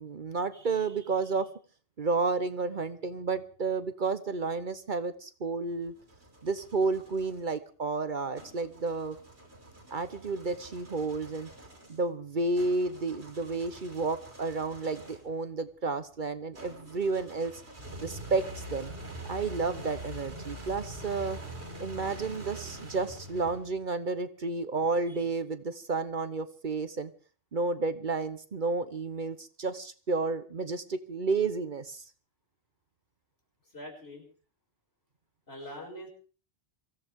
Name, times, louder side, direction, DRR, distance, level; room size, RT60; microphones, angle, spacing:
voice 1, 0.0-1.5 2.0-5.9 6.4-9.2 9.9-11.5 11.9-17.5 18.0-18.9 19.3-21.4 21.8-27.1 27.5-32.0, right 3 dB, 50° right, 12 dB, 1.1 m, -31 dB
sound 1, 5.6-7.4 8.3-15.4 16.5-23.8, right 1 dB, 75° right, 5.5 m, -45 dB
voice 2, 33.6-34.2 35.5-36.1, equal, 70° left, -1 dB, 6.6 m, -43 dB
24.0 x 16.5 x 3.6 m, 0.39 s
omnidirectional pair, 1.1 m